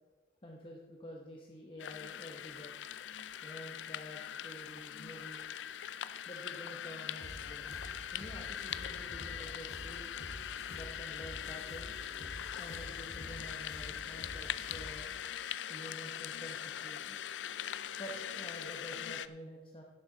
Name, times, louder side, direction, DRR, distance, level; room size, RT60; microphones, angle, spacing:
voice 1, 0.4-2.8 3.4-5.6 6.3-10.1 10.7-15.2 15.7-17.2 18.0-19.8, equal, 30° left, -1 dB, 1.0 m, -49 dB
sound 1, 1.8-19.3, left 9 dB, 90° left, 0.4 m, -42 dB
sound 2, 7.2-15.1, equal, 65° left, 1.9 m, -49 dB
11.0 x 11.0 x 4.0 m, 1.3 s
head